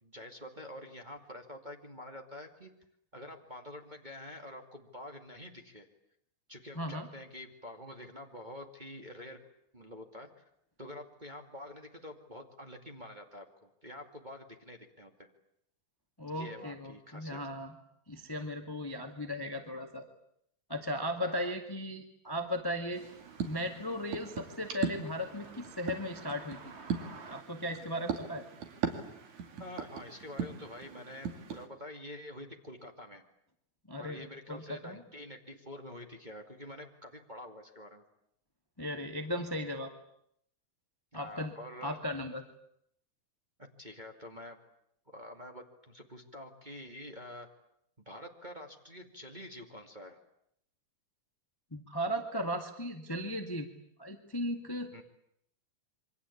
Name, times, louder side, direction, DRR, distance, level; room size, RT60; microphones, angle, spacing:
voice 1, 0.0-2.7 3.1-5.9 6.5-9.4 9.7-10.4 10.8-15.3 16.3-17.4 21.2-21.5 29.6-33.2 34.0-38.0 41.1-42.0 43.8-44.6 45.1-47.5 48.1-50.2 54.9-55.0, left 1 dB, 15° right, 3 dB, 2.1 m, -47 dB
voice 2, 6.7-7.1 16.2-17.7 18.1-20.0 20.7-23.0 23.4-26.6 27.3-28.4 33.9-35.0 38.8-39.9 41.1-41.5 41.8-42.4 51.7-53.7 54.0-54.9, equal, 10° left, 5 dB, 1.6 m, -36 dB
sound 1, 22.3-27.4, right 4 dB, 40° right, 0.9 m, -53 dB
sound 2, 22.9-31.7, right 7 dB, 65° right, 3.7 m, -40 dB
27.5 x 24.5 x 8.6 m, 0.73 s
omnidirectional pair, 3.7 m